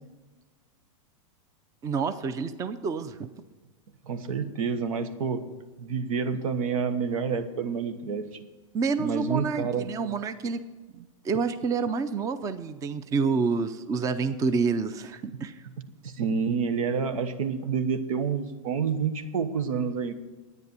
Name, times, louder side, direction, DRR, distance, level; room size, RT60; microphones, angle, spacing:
voice 1, 1.8-3.3 8.7-10.6 10.9-15.6, right 5 dB, 20° right, 11 dB, 0.5 m, -28 dB
voice 2, 4.1-5.4 5.8-8.4 9.0-9.9 16.0-20.1, right 6 dB, 85° right, 10 dB, 1.2 m, -28 dB
11.0 x 9.5 x 6.8 m, 1.2 s
supercardioid pair, 140°, 17 cm